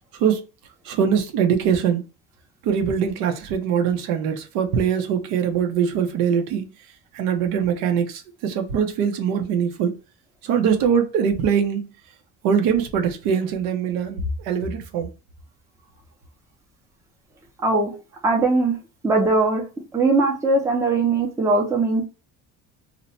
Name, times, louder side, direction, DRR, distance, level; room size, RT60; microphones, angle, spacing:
voice 1, 0.9-2.0 2.6-6.6 7.1-9.9 10.4-11.9 12.4-15.1, right 7 dB, 90° right, 0.8 m, -22 dB
voice 2, 17.6-17.9 18.2-18.8 19.0-19.6 19.9-22.0, right 3 dB, 10° right, 0.5 m, -20 dB
2.8 x 2.2 x 4.1 m
cardioid pair, 165°, 35 cm